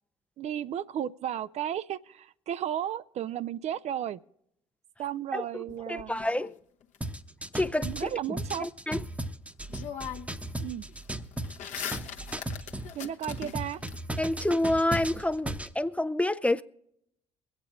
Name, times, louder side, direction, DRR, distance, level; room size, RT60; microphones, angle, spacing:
voice 1, 0.4-4.2 5.0-6.2 7.8-8.7 10.6-10.8 12.9-13.8, right 10 dB, 50° right, 0.4 m, -34 dB
sound 1, 5.7-7.0 9.2-9.3 9.7-10.5 10.8-14.0, left 9 dB, 55° left, 1.0 m, -41 dB
voice 2, 5.9-6.5 7.5-9.0 14.2-16.6, left 1 dB, 10° left, 0.5 m, -28 dB
sound 2, 7.0-12.9 13.3-15.7, right 1 dB, 10° right, 0.9 m, -36 dB
23.5 x 8.8 x 3.7 m
figure-of-eight pair, 50°, 15 cm